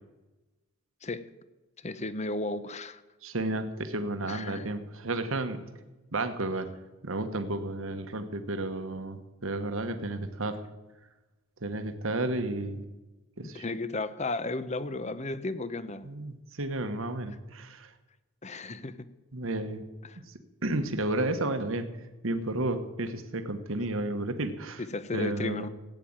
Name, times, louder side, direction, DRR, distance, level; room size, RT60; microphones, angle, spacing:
voice 1, 1.8-3.0 4.2-4.7 9.8-10.1 13.4-16.1 18.4-19.1 20.0-20.2 24.8-25.7, left 2 dB, 30° left, 14 dB, 0.7 m, -34 dB
voice 2, 3.2-5.6 6.1-6.7 7.0-10.6 11.6-12.8 13.4-13.6 16.0-17.9 19.3-19.8 20.3-20.4 20.6-21.9 22.2-24.8 25.1-25.7, right 2 dB, 65° right, 8 dB, 1.3 m, -32 dB
16.0 x 9.3 x 8.8 m, 1.1 s
head